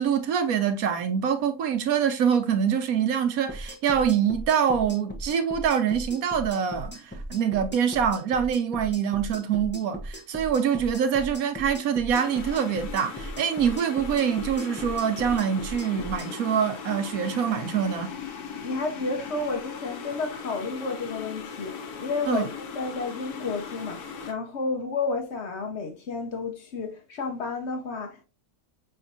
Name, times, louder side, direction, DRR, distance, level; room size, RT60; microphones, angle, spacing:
voice 1, 0.0-18.1 22.3-22.5, right 8 dB, 70° right, 1.2 m, -25 dB
sound 1, 3.5-16.3, equal, 10° left, 0.6 m, -38 dB
sound 2, 12.1-24.3, left 6 dB, 85° left, 1.3 m, -39 dB
voice 2, 18.6-28.2, left 3 dB, 55° left, 1.0 m, -31 dB
5.8 x 3.4 x 2.6 m
omnidirectional pair, 1.6 m